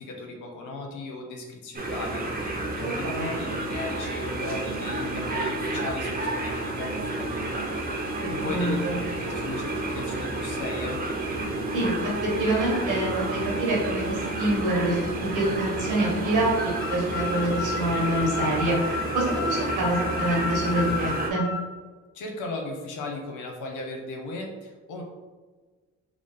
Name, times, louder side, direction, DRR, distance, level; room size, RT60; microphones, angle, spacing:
voice 1, 0.0-8.8 9.2-11.0 22.1-25.0, left 3 dB, 80° left, 2 dB, 0.9 m, -37 dB
sound 1, 1.7-21.3, right 2 dB, 30° right, 0.9 m, -31 dB
voice 2, 2.8-3.3 8.2-9.0 11.7-12.1 12.4-15.0 15.3-21.5, right 1 dB, 90° right, -3 dB, 1.5 m, -26 dB
sound 2, 3.4-18.7, right 5 dB, 70° right, 0.6 m, -40 dB
sound 3, 16.8-21.6, left 4 dB, 40° left, 0.5 m, -32 dB
4.8 x 2.0 x 3.7 m, 1.3 s
cardioid pair, 90°, 30 cm